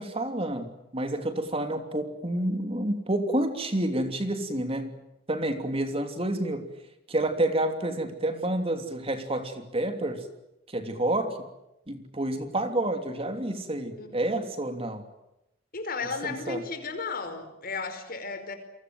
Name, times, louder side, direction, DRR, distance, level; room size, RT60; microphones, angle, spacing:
voice 1, 0.0-5.0 5.3-6.7 7.1-10.3 10.7-11.4 11.9-15.0 16.2-16.6, right 1 dB, 30° right, 7 dB, 3.0 m, -29 dB
voice 2, 14.0-14.4 15.7-18.5, left 4 dB, 50° left, 9 dB, 5.0 m, -34 dB
29.5 x 23.5 x 7.8 m, 0.88 s
head